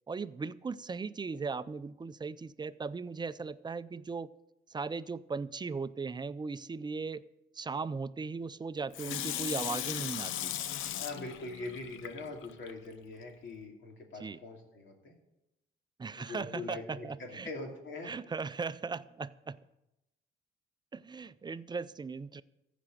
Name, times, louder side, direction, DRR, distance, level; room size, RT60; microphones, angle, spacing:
voice 1, 0.1-4.3 4.7-7.2 7.5-10.6 14.2-14.4 16.0-17.5 18.0-19.6 20.9-22.4, right 4 dB, 20° right, 0.5 m, -38 dB
Water tap faucet / Sink (filling or washing), 8.9-12.7 13.2-13.3, left 11 dB, 90° left, 0.6 m, -37 dB
voice 2, 11.0-15.1 16.2-18.1, left 3 dB, 70° left, 2.7 m, -42 dB
14.5 x 5.1 x 7.8 m
cardioid pair, 90°, 20 cm